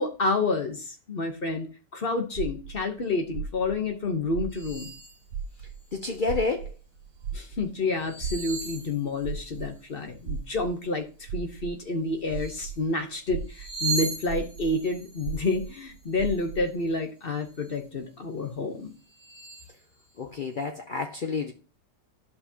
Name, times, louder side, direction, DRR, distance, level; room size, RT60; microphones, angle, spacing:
voice 1, 0.0-4.9 7.3-18.9, left 3 dB, 40° left, 0.9 m, -29 dB
sound 1, 2.3-5.0 5.3-12.8 13.2-16.7, right 6 dB, 85° right, 1.3 m, -36 dB
sound 2, 4.5-5.2 5.7-6.3 8.0-9.6 12.2-12.8 13.4-16.9 17.3-17.8 18.4-18.5 19.0-19.7, right 4 dB, 55° right, 2.0 m, -38 dB
voice 2, 5.9-6.7 20.2-21.5, left 4 dB, 70° left, 0.4 m, -29 dB
11.5 x 5.4 x 2.8 m
omnidirectional pair, 1.8 m